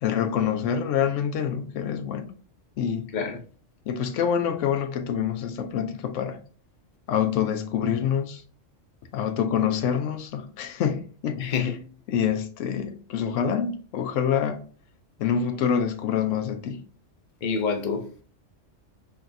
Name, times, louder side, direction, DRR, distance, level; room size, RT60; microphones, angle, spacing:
voice 1, 0.0-2.3 2.8-3.1 3.9-6.4 7.1-8.4 9.1-11.7 12.1-14.6 15.2-16.8, left 8 dB, 75° left, 0.9 m, -26 dB
voice 2, 11.4-11.8 17.4-18.2, left 5 dB, 50° left, 0.7 m, -27 dB
5.8 x 3.3 x 2.5 m
omnidirectional pair, 1.3 m